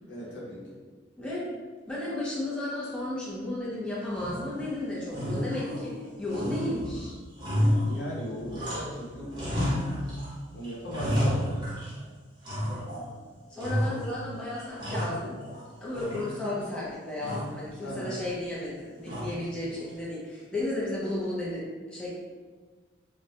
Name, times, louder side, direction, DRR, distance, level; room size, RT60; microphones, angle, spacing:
voice 1, 0.1-0.6 7.8-9.3 10.5-11.5 17.8-18.2, equal, 75° left, -6 dB, 0.7 m, -37 dB
voice 2, 1.9-5.9 6.2-7.1 13.5-15.4 15.8-21.6 21.9-22.2, left 1 dB, 5° left, -8 dB, 0.4 m, -33 dB
sound 1, 4.1-4.7 5.1-6.0 6.3-9.0 9.3-10.3 10.6-12.0 12.4-13.1 13.6-14.2 14.6-15.6 15.9-16.7 17.2-17.6 19.1-19.6, equal, 25° right, 0.7 m, -31 dB
2.3 x 2.0 x 2.7 m, 1.4 s
head